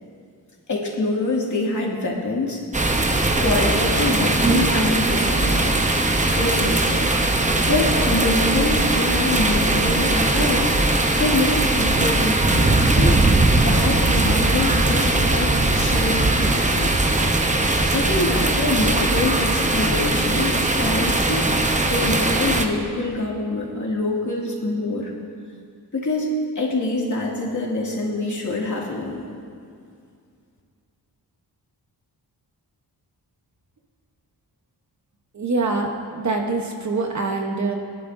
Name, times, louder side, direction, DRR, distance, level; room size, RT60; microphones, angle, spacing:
voice 1, 0.7-3.0 3.4-6.1 6.4-16.9 17.9-25.1 25.9-26.3 26.6-29.2, left 2 dB, 50° left, -3 dB, 2.3 m, -25 dB
sound 1, 2.7-22.7, right 2 dB, 20° right, 0.7 m, -20 dB
voice 2, 35.3-37.7, right 3 dB, 45° right, 2 dB, 1.1 m, -24 dB
20.5 x 11.0 x 2.6 m, 2.3 s
wide cardioid pair, 110°, 40 cm